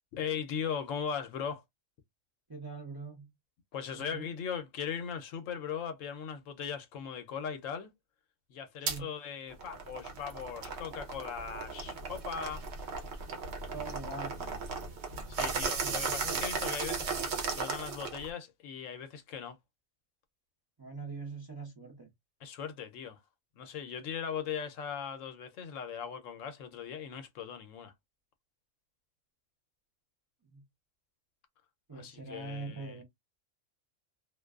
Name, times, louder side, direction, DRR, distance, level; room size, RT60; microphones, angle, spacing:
voice 1, 0.1-1.6 3.7-7.9 8.5-12.6 15.3-19.6 22.4-23.2 23.6-27.9 31.9-33.0, left 7 dB, 75° left, 0.9 m, -39 dB
voice 2, 2.5-3.3 3.9-4.3 8.9-9.1 13.7-14.7 15.8-16.0 20.8-22.1 30.4-30.6 31.9-33.0, right 3 dB, 25° right, 0.5 m, -43 dB
sound 1, 8.9-9.0 9.5-18.3, right 5 dB, 60° right, 0.9 m, -36 dB
2.5 x 2.2 x 2.3 m
omnidirectional pair, 1.4 m